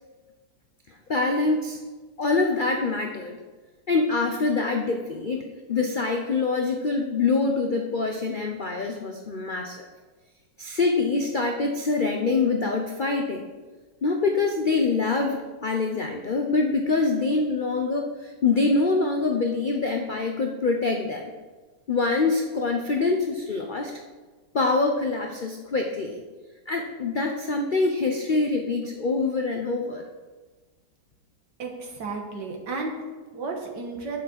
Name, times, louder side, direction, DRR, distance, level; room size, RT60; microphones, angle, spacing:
voice 1, 1.1-1.8 2.2-3.4 3.9-5.4 5.7-9.9 10.6-13.5 14.0-21.2 21.9-23.9 24.5-26.2 26.7-30.0, left 3 dB, 75° left, 2 dB, 0.4 m, -25 dB
voice 2, 31.6-34.2, right 3 dB, 70° right, 2 dB, 1.9 m, -33 dB
6.7 x 6.1 x 7.5 m, 1.3 s
omnidirectional pair, 1.9 m